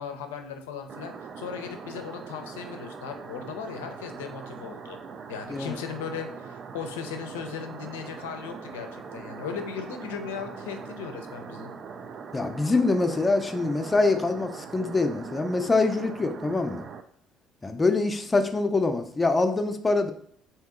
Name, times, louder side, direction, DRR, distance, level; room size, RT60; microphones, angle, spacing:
voice 1, 0.0-5.0 5.3-11.7, left 7 dB, 90° left, 6 dB, 0.4 m, -37 dB
sound 1, 0.9-17.0, right 5 dB, 50° right, 0.4 m, -41 dB
voice 2, 12.3-16.8 17.6-20.1, left 3 dB, 20° left, 7 dB, 0.5 m, -24 dB
3.5 x 2.8 x 3.6 m, 0.63 s
hypercardioid pair, 70°, 0 cm